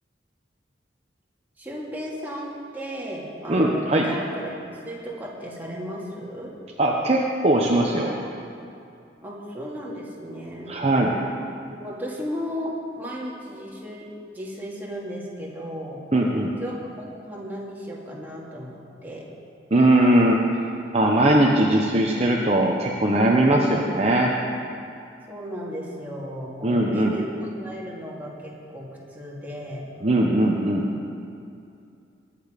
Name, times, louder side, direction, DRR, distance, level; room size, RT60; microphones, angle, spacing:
voice 1, 1.6-4.6 4.8-6.5 9.2-10.7 11.7-14.1 14.3-16.0 16.6-16.8 17.1-19.2 25.3-29.8, equal, 10° right, -5 dB, 2.5 m, -35 dB
voice 2, 3.5-4.1 6.8-8.1 10.7-11.2 16.1-16.5 19.7-20.4 20.9-24.3 26.6-27.2 30.0-30.9, right 1 dB, 35° right, -2 dB, 1.0 m, -20 dB
22.5 x 8.6 x 5.2 m, 2.5 s
head